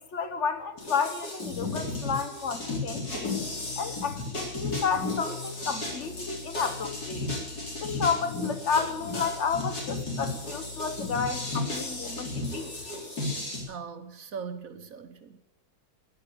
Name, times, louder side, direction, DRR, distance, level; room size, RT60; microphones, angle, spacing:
voice 1, 0.0-3.3 3.8-7.3 7.8-12.9, left 6 dB, 50° left, 1.4 m, -31 dB
sound 1, 0.8-13.6, left 2 dB, 70° left, 4.4 m, -34 dB
sound 2, 2.4-13.1, left 6 dB, 90° left, 2.8 m, -45 dB
voice 2, 13.7-15.4, right 6 dB, 60° right, 1.4 m, -40 dB
15.0 x 11.0 x 6.8 m
omnidirectional pair, 1.7 m